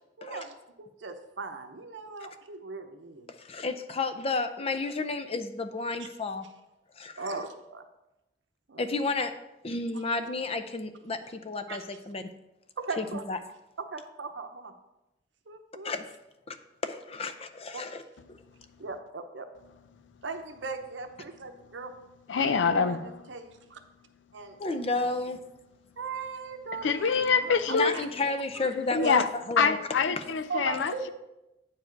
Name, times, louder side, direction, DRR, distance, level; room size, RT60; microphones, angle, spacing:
voice 1, 0.2-3.3 6.0-6.1 7.2-7.8 8.7-8.9 11.7-11.8 12.8-13.2 13.8-14.7 15.5-15.9 17.7-17.8 18.8-19.5 20.2-21.9 22.6-23.0 23.3-23.8 24.3-24.8 26.0-28.7 29.0-29.2 30.5-31.1, right 4 dB, 85° right, 7 dB, 0.8 m, -39 dB
voice 2, 3.3-6.5 7.0-7.4 8.8-9.4 9.6-12.2 13.0-13.4 15.8-16.1 16.5-16.6 16.8-18.0 24.6-25.4 27.7-29.8 30.2-30.3, left 3 dB, 35° left, 9 dB, 0.5 m, -32 dB
voice 3, 22.3-23.0 26.8-28.0 28.9-29.3 29.6-31.1, left 5 dB, 90° left, 11 dB, 0.5 m, -25 dB
9.0 x 4.8 x 4.5 m, 0.94 s
head